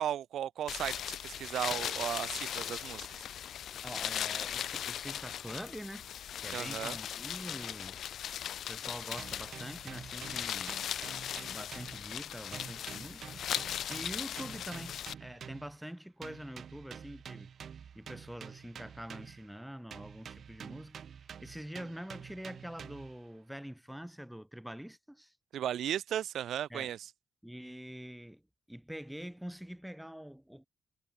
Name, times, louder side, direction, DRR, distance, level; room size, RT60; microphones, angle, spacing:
voice 1, 0.0-3.3 6.5-7.0 25.5-27.0, right 10 dB, 75° right, 1.2 m, -35 dB
sound 1, 0.7-15.1, left 10 dB, 75° left, 0.3 m, -38 dB
voice 2, 3.8-6.1 6.4-8.0 8.7-10.8 11.3-13.4 13.9-17.5 17.9-21.0 21.4-25.3 26.7-26.9 27.4-28.4 28.7-30.7, equal, 5° right, 3.2 m, -45 dB
sound 2, 9.2-12.3 12.5-15.8 16.2-19.6 19.9-23.2, right 7 dB, 60° right, 4.4 m, -48 dB
cardioid pair, 100°, 0 cm